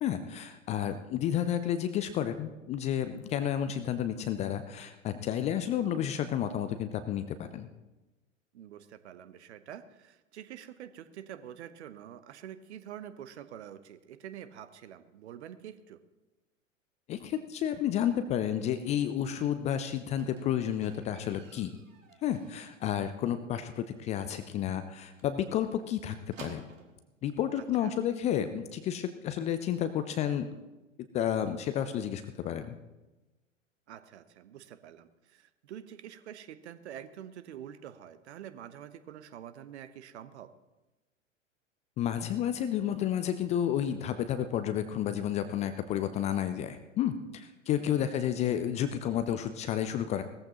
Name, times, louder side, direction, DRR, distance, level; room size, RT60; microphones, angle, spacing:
voice 1, 0.0-7.7 17.1-21.7 22.2-26.2 26.4-26.6 27.2-30.5 31.1-32.8 42.0-50.2, left 10 dB, 20° left, 10 dB, 0.4 m, -31 dB
voice 2, 0.7-1.0 8.5-16.0 27.6-27.9 33.9-40.5 47.8-48.1, right 10 dB, 55° right, 13 dB, 0.9 m, -47 dB
Squeak, 20.2-23.0 23.3-23.7 24.0-24.1 24.4-24.5 24.8-24.9 25.2-27.0 27.9-28.0, right 5 dB, 75° right, 1.9 m, -53 dB
17.5 x 14.0 x 3.0 m, 1.1 s
figure-of-eight pair, 95°, 39 cm